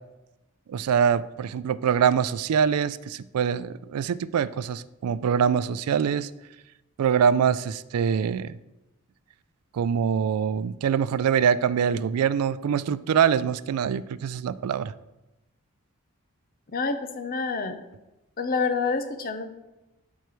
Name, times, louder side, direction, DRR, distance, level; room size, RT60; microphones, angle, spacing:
voice 1, 0.7-6.3 7.0-8.5 9.7-14.9, right 7 dB, 80° right, 16 dB, 0.3 m, -24 dB
voice 2, 16.7-17.8 18.4-19.5, left 4 dB, 40° left, 7 dB, 0.7 m, -27 dB
13.0 x 4.6 x 3.1 m, 0.98 s
head